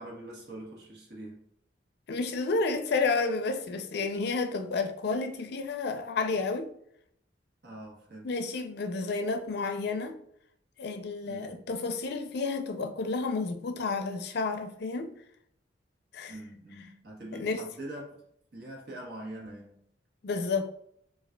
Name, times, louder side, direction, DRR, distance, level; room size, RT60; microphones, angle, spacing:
voice 1, 0.0-1.5 7.6-8.5 11.2-11.8 16.3-18.3 18.5-19.9, right 1 dB, 60° right, 1.1 m, -44 dB
voice 2, 2.1-6.7 8.2-10.2 10.8-15.1 16.1-16.3 17.3-17.6 20.2-20.7, left 4 dB, 60° left, 0.4 m, -31 dB
4.8 x 2.4 x 2.2 m
head